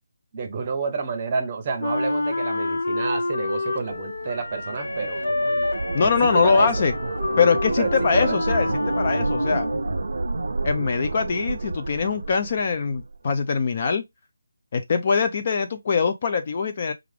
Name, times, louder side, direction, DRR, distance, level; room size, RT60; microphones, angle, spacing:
voice 1, 0.3-5.3 6.0-6.7 7.8-8.4, right 4 dB, 25° right, 0.7 m, -29 dB
Wind instrument woodwind instrument, 1.8-10.0, left 2 dB, 70° left, 0.7 m, -28 dB
sound 1, 3.9-13.2, right 3 dB, 65° right, 0.5 m, -30 dB
voice 2, 5.9-6.9 7.4-8.7 9.0-9.7 10.6-14.0 14.7-16.9, left 5 dB, 30° left, 0.4 m, -22 dB
4.8 x 2.4 x 3.2 m
figure-of-eight pair, 175°, 0 cm